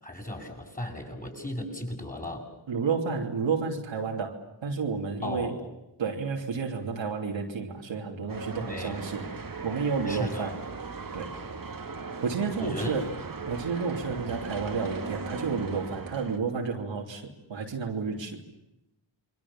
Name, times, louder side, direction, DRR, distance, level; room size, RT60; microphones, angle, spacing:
voice 1, 0.0-2.4 5.2-5.7 8.6-9.2 10.1-10.5 12.6-12.9, left 1 dB, 20° left, 2 dB, 7.9 m, -36 dB
voice 2, 2.7-4.4 4.6-5.6 6.0-9.2 9.6-10.6 11.1-11.4 12.2-13.1 13.5-18.4, right 5 dB, 85° right, 1 dB, 3.1 m, -31 dB
sound 1, 8.3-16.4, right 4 dB, 45° right, 2.1 m, -38 dB
28.0 x 22.5 x 7.3 m, 0.89 s
cardioid pair, 55°, 44 cm